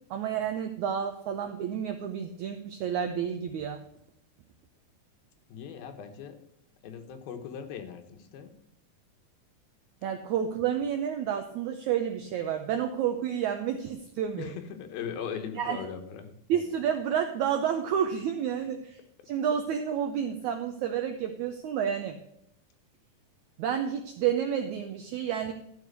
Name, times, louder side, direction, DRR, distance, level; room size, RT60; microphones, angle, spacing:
voice 1, 0.1-3.8 10.0-14.5 15.5-15.9 16.5-18.8 19.3-22.2 23.6-25.5, right 8 dB, 90° right, 5 dB, 1.7 m, -30 dB
voice 2, 5.5-6.4 6.8-8.5 14.3-16.4, left 7 dB, 80° left, 6 dB, 2.9 m, -39 dB
13.5 x 5.0 x 6.6 m, 0.75 s
omnidirectional pair, 4.3 m